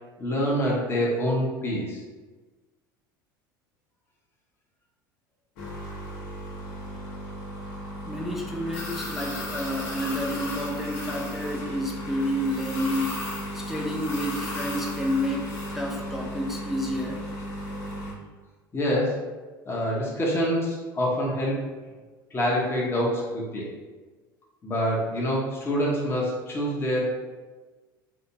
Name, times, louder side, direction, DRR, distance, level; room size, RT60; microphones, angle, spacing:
voice 1, 0.2-2.0 17.7-17.8 18.7-19.2 19.7-21.6 22.3-23.7 24.6-27.1, equal, 20° left, -4 dB, 0.9 m, -26 dB
sound 1, 5.6-18.1, equal, 55° left, 0.9 m, -34 dB
voice 2, 8.1-13.3 13.5-17.2, left 1 dB, ahead, -2 dB, 0.4 m, -30 dB
3.3 x 2.7 x 2.7 m, 1.3 s
figure-of-eight pair, 70°, 12 cm